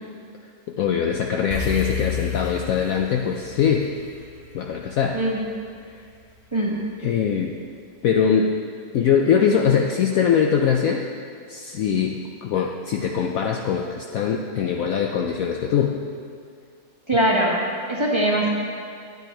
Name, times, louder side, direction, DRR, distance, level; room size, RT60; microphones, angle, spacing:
voice 1, 0.7-3.9 4.5-5.2 5.9-6.0 7.0-7.5 8.0-8.5 8.9-11.1 11.5-16.0, left 7 dB, 70° left, 2 dB, 0.9 m, -22 dB
sound 1, 1.5-6.0, left 5 dB, 30° left, 0.8 m, -32 dB
voice 2, 17.1-17.5 17.9-18.5, right 1 dB, 20° right, -4 dB, 1.2 m, -21 dB
10.5 x 9.1 x 4.4 m, 2.2 s
omnidirectional pair, 1.8 m